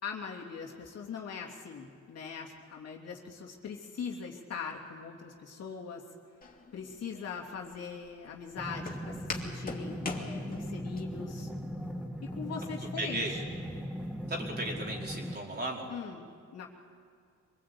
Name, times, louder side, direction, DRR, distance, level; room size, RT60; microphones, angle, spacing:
voice 1, 0.0-6.0 6.7-11.5 12.2-13.4 15.9-16.3 16.5-16.7, left 6 dB, 55° left, -1 dB, 3.0 m, -41 dB
Walk footsteps, 6.4-11.0, left 3 dB, 30° left, 2.8 m, -42 dB
sound 1, 8.6-15.4, equal, 5° right, 1.8 m, -39 dB
voice 2, 13.0-13.3 14.3-15.9, right 1 dB, 35° right, -1 dB, 4.8 m, -35 dB
25.5 x 19.0 x 8.7 m, 2.3 s
cardioid pair, 90°, 30 cm